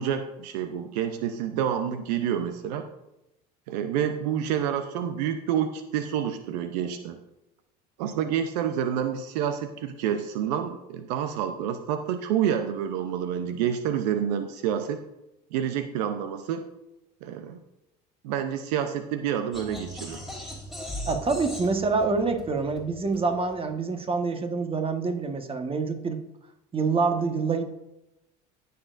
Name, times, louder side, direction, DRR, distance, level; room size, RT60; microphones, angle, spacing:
voice 1, 0.0-2.9 3.7-7.2 8.0-15.0 15.5-16.6 17.2-17.6 18.2-20.2, right 9 dB, 75° right, 9 dB, 0.7 m, -28 dB
sound 1, 19.5-23.7, equal, ahead, 3.0 m, -39 dB
voice 2, 21.0-26.2 26.7-27.6, right 4 dB, 25° right, 6 dB, 1.4 m, -26 dB
16.5 x 6.8 x 2.6 m, 0.91 s
hypercardioid pair, 80°, 21 cm